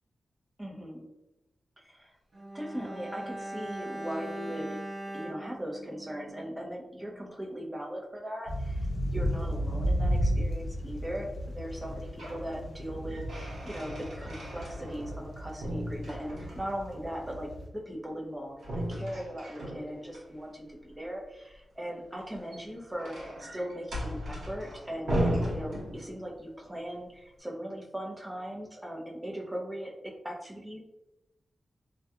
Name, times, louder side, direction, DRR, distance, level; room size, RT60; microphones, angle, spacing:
voice 1, 0.6-1.1 1.8-2.1 2.5-4.8 5.1-18.6 18.9-30.8, equal, 10° right, -2 dB, 0.6 m, -39 dB
Bowed string instrument, 2.3-6.8 7.0-7.2, right 1 dB, 55° right, 0.6 m, -41 dB
sound 1, 8.5-17.7, equal, 65° left, 0.5 m, -34 dB
sound 2, 11.8-12.5 12.8-15.3 15.6-16.8 18.6-20.2 22.2-26.4, equal, 75° right, 1.0 m, -36 dB
2.2 x 2.2 x 2.8 m, 0.94 s
wide cardioid pair, 85°, 0 cm